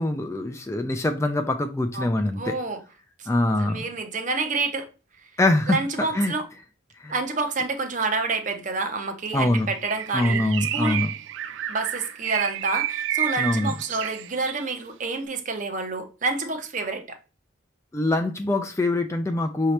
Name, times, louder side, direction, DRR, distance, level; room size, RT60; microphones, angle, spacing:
voice 1, 0.0-2.5 3.3-3.9 5.4-6.3 7.0-7.1 9.3-9.7 10.1-11.1 13.4-13.7 17.9-19.7, left 2 dB, 15° left, 0.3 m, -24 dB
voice 2, 1.9-2.8 3.2-3.3 3.6-4.9 5.7-6.4 7.1-11.0 11.7-17.2, right 3 dB, 40° right, 0.6 m, -28 dB
Bird, 9.8-14.7, right 12 dB, 70° right, 0.3 m, -30 dB
5.9 x 2.8 x 3.2 m
head